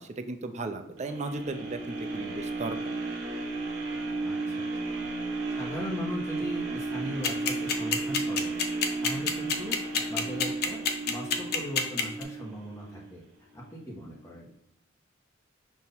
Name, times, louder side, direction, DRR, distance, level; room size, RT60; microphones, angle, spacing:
voice 1, 0.0-2.8, right 3 dB, 35° right, 7 dB, 0.5 m, -35 dB
sound 1, 1.0-13.1 13.6-13.7, right 3 dB, 70° right, 1.2 m, -34 dB
voice 2, 4.2-4.9 5.5-8.5 9.0-10.8 11.1-13.2 13.5-14.5, equal, 15° left, -5 dB, 1.4 m, -39 dB
sound 2, 7.2-12.2, left 6 dB, 50° left, 0.7 m, -26 dB
6.1 x 2.8 x 5.5 m, 0.78 s
head